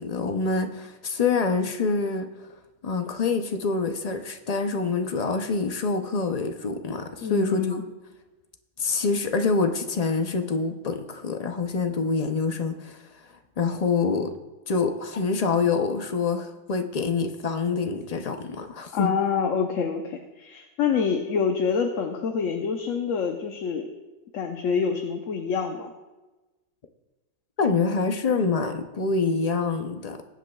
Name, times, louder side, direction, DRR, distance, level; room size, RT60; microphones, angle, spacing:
voice 1, 0.0-2.3 2.8-7.8 8.8-13.0 13.6-14.3 14.7-19.2 27.6-30.2, left 4 dB, 45° left, 7 dB, 0.5 m, -26 dB
voice 2, 7.2-7.8 18.9-23.9 24.3-25.9, left 6 dB, 70° left, 3 dB, 1.1 m, -26 dB
20.5 x 8.2 x 2.3 m, 1.1 s
omnidirectional pair, 1.4 m